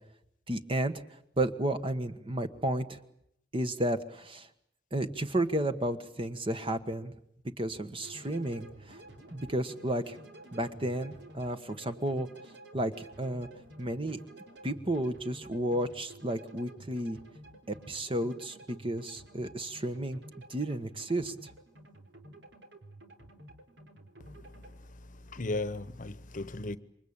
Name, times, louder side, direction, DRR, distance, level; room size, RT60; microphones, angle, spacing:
voice 1, 0.5-0.9 1.4-3.0 3.5-4.5 4.9-7.1 7.6-9.0 9.3-10.2 10.5-12.3 12.7-13.5 13.8-14.2 14.6-17.2 17.7-20.2 20.5-21.5, right 1 dB, 30° right, 1.5 m, -32 dB
sound 1, 8.0-24.7, right 2 dB, 85° right, 4.0 m, -51 dB
voice 2, 24.2-26.8, left 2 dB, 50° left, 1.1 m, -37 dB
28.0 x 24.0 x 8.8 m
head